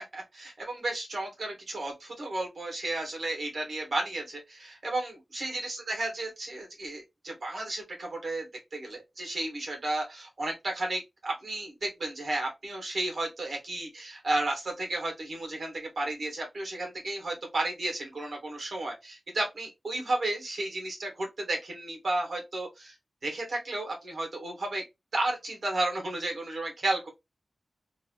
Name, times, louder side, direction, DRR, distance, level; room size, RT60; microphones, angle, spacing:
voice 1, 0.0-22.9 23.2-24.8 25.1-27.1, right 2 dB, 65° right, 1.4 m, -33 dB
2.9 x 2.6 x 2.8 m
wide cardioid pair, 80°, 0 cm